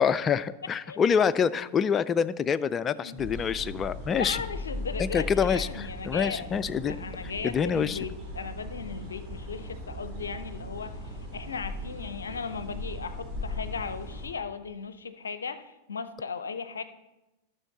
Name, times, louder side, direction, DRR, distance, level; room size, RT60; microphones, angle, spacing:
voice 1, 0.0-4.4 5.0-7.0 7.4-8.0, left 7 dB, 25° left, 15 dB, 0.3 m, -26 dB
sound 1, 3.2-14.3, left 1 dB, 25° right, 3.1 m, -38 dB
voice 2, 4.1-6.5 6.8-11.0 11.3-16.8, left 5 dB, 70° left, 12 dB, 0.5 m, -37 dB
12.0 x 6.1 x 4.0 m, 1.0 s
figure-of-eight pair, 90°, 0 cm